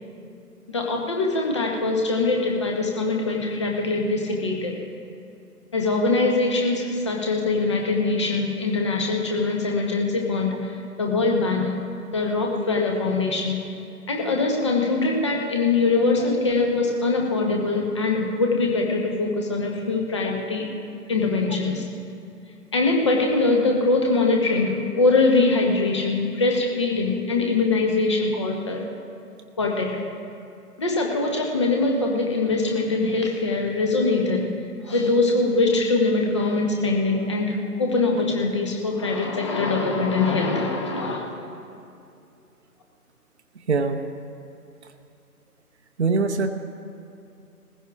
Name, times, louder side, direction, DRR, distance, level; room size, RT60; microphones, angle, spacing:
voice 1, 0.7-4.8 5.7-11.7 12.0-13.6 14.1-20.7 21.1-21.9 22.7-28.8 29.6-30.0 30.8-34.5 34.8-41.3, left 3 dB, 20° left, 1 dB, 0.9 m, -23 dB
voice 2, 43.7-44.0 46.0-46.5, right 4 dB, 45° right, 5 dB, 0.8 m, -22 dB
20.5 x 15.5 x 2.4 m, 2.6 s
figure-of-eight pair, 150°, 47 cm